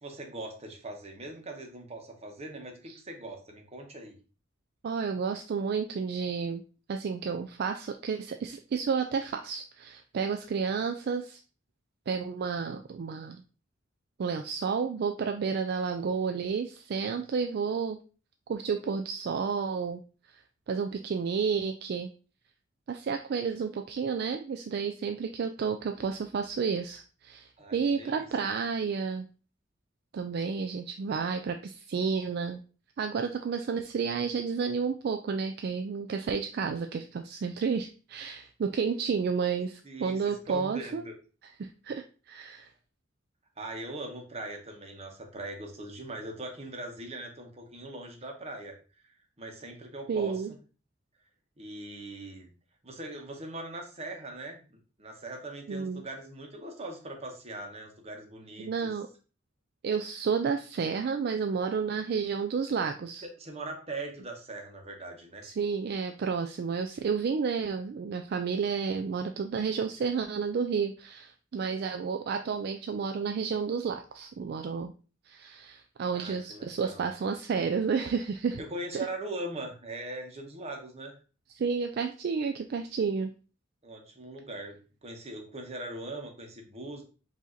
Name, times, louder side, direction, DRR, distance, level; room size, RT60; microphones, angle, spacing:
voice 1, 0.0-4.2 27.6-28.3 39.8-41.1 43.6-48.8 49.0-50.4 51.6-52.5 52.8-58.9 63.4-65.5 76.1-77.1 78.6-81.2 83.8-87.0, right 2 dB, 35° right, 2 dB, 1.0 m, -41 dB
voice 2, 4.8-6.6 6.9-11.4 12.1-13.4 14.2-18.0 18.5-20.0 20.7-22.1 22.9-29.3 30.1-32.6 33.0-41.0 41.6-42.7 50.1-50.5 55.7-56.0 58.6-59.1 59.8-63.3 65.4-74.9 75.3-78.6 78.9-79.1 81.6-83.3, right 5 dB, 55° right, 6 dB, 0.3 m, -31 dB
5.0 x 2.7 x 3.8 m, 0.36 s
head